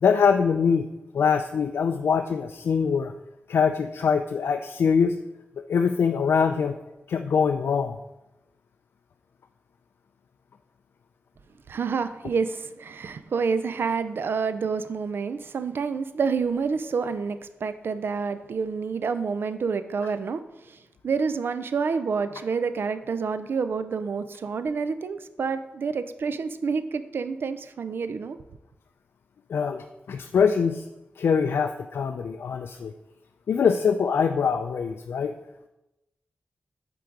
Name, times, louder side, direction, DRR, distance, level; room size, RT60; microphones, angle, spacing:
voice 1, 0.0-0.9 1.1-3.1 3.5-5.2 5.7-6.7 7.1-8.0 29.5-30.8 31.2-32.9 33.5-35.3, left 6 dB, 85° left, 7 dB, 0.3 m, -23 dB
voice 2, 11.7-28.4, right 5 dB, 70° right, 11 dB, 0.4 m, -28 dB
8.5 x 3.8 x 4.6 m, 0.95 s
wide cardioid pair, 155°, 4 cm